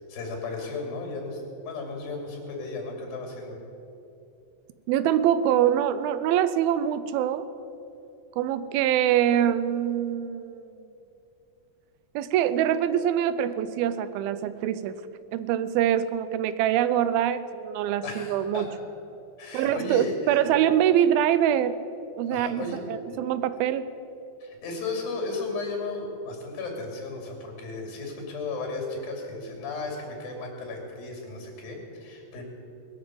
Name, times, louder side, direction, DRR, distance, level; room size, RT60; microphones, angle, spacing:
voice 1, 0.1-3.6 18.0-18.7 19.4-20.6 22.3-23.3 24.4-32.4, left 3 dB, 70° left, 1 dB, 4.6 m, -35 dB
voice 2, 4.9-7.5 8.4-10.6 12.2-15.0 15.3-18.7 19.5-21.8 22.2-22.6 22.9-23.9, right 10 dB, 85° right, 14 dB, 2.5 m, -24 dB
20.5 x 7.2 x 7.8 m, 2.8 s
omnidirectional pair, 4.3 m